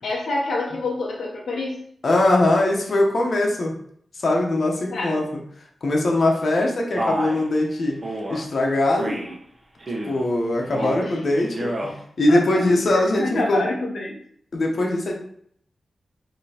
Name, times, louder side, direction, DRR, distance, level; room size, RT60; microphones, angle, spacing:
voice 1, 0.0-1.8 4.9-5.1 10.8-11.4 12.3-12.4 12.9-14.2, left 2 dB, 85° left, -2 dB, 0.7 m, -27 dB
voice 2, 2.0-3.8 4.2-5.4 5.8-8.0 8.3-9.2 10.0-11.9 12.2-13.6 14.5-15.1, left 1 dB, 60° left, 0 dB, 0.9 m, -21 dB
Male speech man speaking, 7.0-7.4 8.0-8.4 9.0-9.4 9.8-10.2 10.6-11.1 11.5-11.9, right 1 dB, 35° right, 1.0 m, -29 dB
5.1 x 3.0 x 2.9 m, 0.64 s
wide cardioid pair, 80°, 0 cm